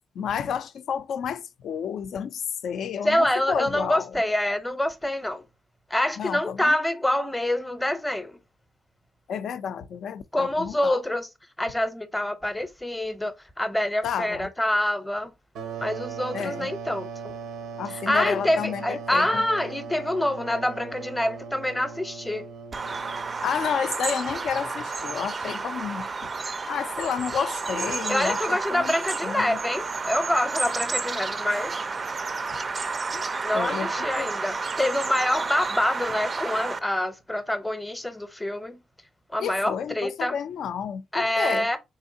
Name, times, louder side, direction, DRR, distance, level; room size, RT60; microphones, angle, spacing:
voice 1, 0.2-4.1 6.2-6.7 9.3-11.0 14.0-14.5 16.3-16.7 17.8-19.5 23.4-26.1 26.7-28.9 29.2-29.6 33.1-33.3 33.5-34.3 39.4-41.7, left 8 dB, 70° left, 0.3 m, -31 dB
voice 2, 3.0-5.5 5.9-8.4 10.3-11.3 11.6-15.3 15.8-17.3 17.9-22.5 28.1-31.8 33.4-38.8 39.3-40.4 41.1-41.8, left 1 dB, 10° left, 0.6 m, -26 dB
sound 1, 15.5-23.9, right 6 dB, 90° right, 0.6 m, -38 dB
Bird vocalization bird call bird song, 22.7-36.8, right 4 dB, 40° right, 0.4 m, -31 dB
3.6 x 2.7 x 2.6 m
supercardioid pair, 65°, 0 cm